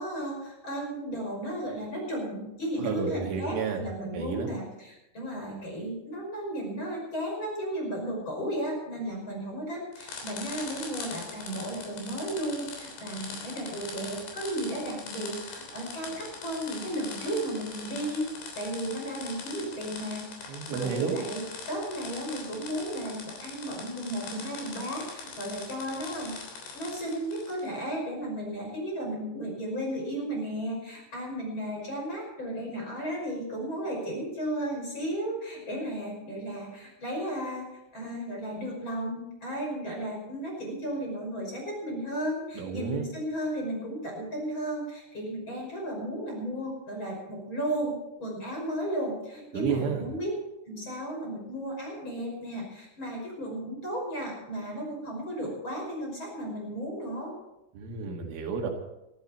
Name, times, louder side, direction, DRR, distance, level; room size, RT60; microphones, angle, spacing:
voice 1, 0.0-18.3 18.6-26.3 26.7-37.6 37.9-47.9 48.2-50.3 50.7-57.3, right 1 dB, 25° left, -1 dB, 5.9 m, -34 dB
voice 2, 2.8-3.8 4.1-4.5 20.5-21.2 42.6-43.1 49.5-50.0 57.8-58.7, right 5 dB, 75° right, 2 dB, 4.3 m, -31 dB
sound 1, 9.9-27.7, left 4 dB, 65° left, 5.5 m, -42 dB
22.5 x 13.5 x 4.4 m, 0.89 s
omnidirectional pair, 5.7 m